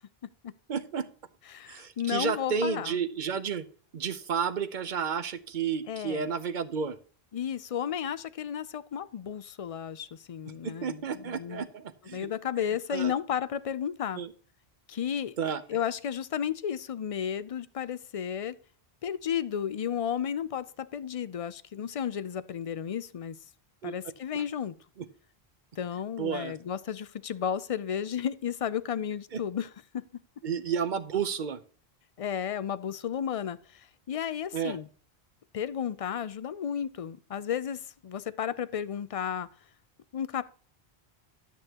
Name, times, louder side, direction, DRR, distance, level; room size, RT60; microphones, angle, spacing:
voice 1, 0.7-1.0 1.7-3.7 3.9-7.0 10.6-12.3 12.9-13.1 14.2-14.3 15.4-15.6 23.8-23.9 24.3-24.4 26.2-26.5 29.3-29.4 30.4-31.6 34.5-34.8, right 6 dB, 50° right, 0.9 m, -31 dB
voice 2, 1.5-3.0 5.9-6.3 7.3-11.7 12.1-14.2 14.9-18.5 19.0-23.4 23.8-24.7 25.8-30.0 32.2-34.9 35.5-39.5 40.1-40.4, left 8 dB, 50° left, 0.4 m, -33 dB
11.0 x 8.7 x 2.9 m
omnidirectional pair, 1.1 m